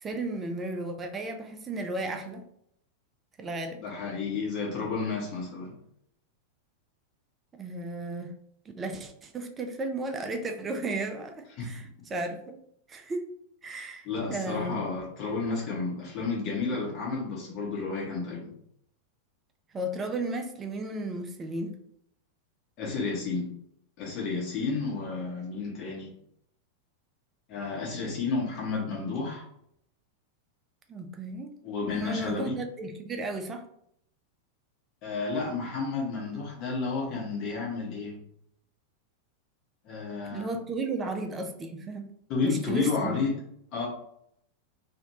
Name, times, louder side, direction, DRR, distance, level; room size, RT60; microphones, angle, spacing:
voice 1, 0.0-2.4 3.4-3.8 7.5-8.3 8.8-12.6 12.9-13.3 13.6-14.9 19.7-21.8 30.9-31.6 31.9-33.7 40.3-42.1 42.4-43.2, right 2 dB, 20° right, 6 dB, 0.5 m, -34 dB
voice 2, 3.8-5.7 11.6-11.7 14.0-18.5 22.8-23.5 24.0-26.1 27.5-29.4 31.6-32.6 35.0-38.1 39.8-40.5 42.3-43.3 43.7-43.9, left 4 dB, 40° left, -3 dB, 1.3 m, -31 dB
3.1 x 2.7 x 2.8 m, 0.71 s
figure-of-eight pair, 90°, 0 cm